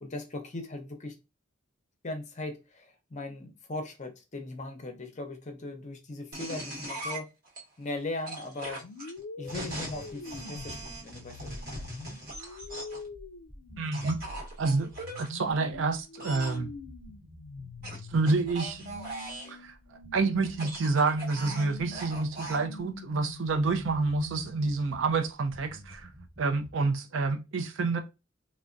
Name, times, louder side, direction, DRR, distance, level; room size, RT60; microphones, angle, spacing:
voice 1, 0.0-1.2 2.0-7.3 7.8-8.9 9.4-11.9, left 2 dB, 35° left, 0.6 m, -39 dB
sound 1, 6.3-7.6 8.3-13.1 13.9-15.3 16.2-16.6 17.8-19.6 20.4-22.6, right 2 dB, 50° right, 1.0 m, -40 dB
sound 2, 8.8-24.9, left 3 dB, 85° left, 0.4 m, -45 dB
sound 3, 9.9-16.0 16.3-19.4 19.6-21.5 21.8-25.2 25.5-26.7, equal, 10° right, 0.8 m, -51 dB
voice 2, 13.8-14.2 14.6-14.9 15.2-16.7 18.1-18.8 19.5-19.7 20.1-26.1 26.4-28.0, right 3 dB, 65° right, 0.4 m, -28 dB
3.4 x 2.1 x 2.5 m
head